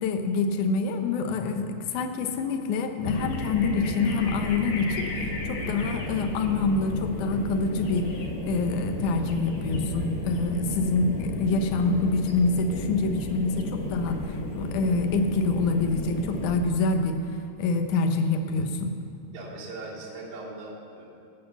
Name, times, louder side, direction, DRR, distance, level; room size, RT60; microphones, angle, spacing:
voice 1, 0.0-8.2 8.5-17.2 17.6-19.0, left 3 dB, 80° left, 6 dB, 1.8 m, -26 dB
sound 1, 3.0-16.6, left 1 dB, 55° left, 2.2 m, -33 dB
voice 2, 19.3-21.1, right 2 dB, 55° right, -7 dB, 4.6 m, -39 dB
15.5 x 9.2 x 7.1 m, 2.5 s
omnidirectional pair, 4.8 m